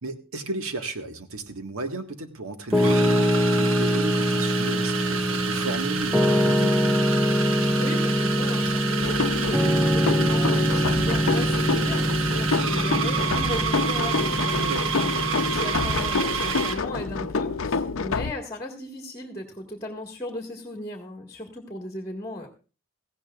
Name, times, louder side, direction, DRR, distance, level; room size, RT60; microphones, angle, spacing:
voice 1, 0.0-6.8 14.6-14.8, right 2 dB, 85° right, 6 dB, 1.7 m, -34 dB
sound 1, 1.4-1.5 2.7-16.9, right 6 dB, 65° right, 1.2 m, -29 dB
Piano, 2.7-16.1, equal, ahead, 0.6 m, -24 dB
voice 2, 7.5-22.5, left 1 dB, 15° left, 2 dB, 1.7 m, -36 dB
sound 2, 9.0-18.3, left 4 dB, 70° left, 0.6 m, -28 dB
17.5 x 15.5 x 2.4 m, 0.34 s
head